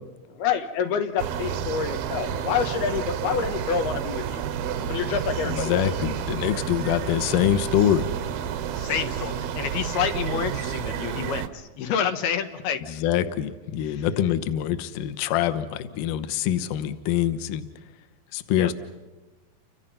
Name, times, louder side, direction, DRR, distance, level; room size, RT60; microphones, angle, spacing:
voice 1, 0.3-4.4 4.9-5.9 8.8-12.8 13.9-14.0 18.5-18.7, left 7 dB, 90° left, 7 dB, 3.3 m, -28 dB
sound 1, 1.2-11.5, right 8 dB, 80° right, 3.0 m, -30 dB
voice 2, 5.4-8.1 12.9-17.7 18.3-18.7, left 10 dB, 70° left, 9 dB, 2.5 m, -25 dB
30.0 x 25.5 x 5.6 m, 1.2 s
omnidirectional pair, 4.3 m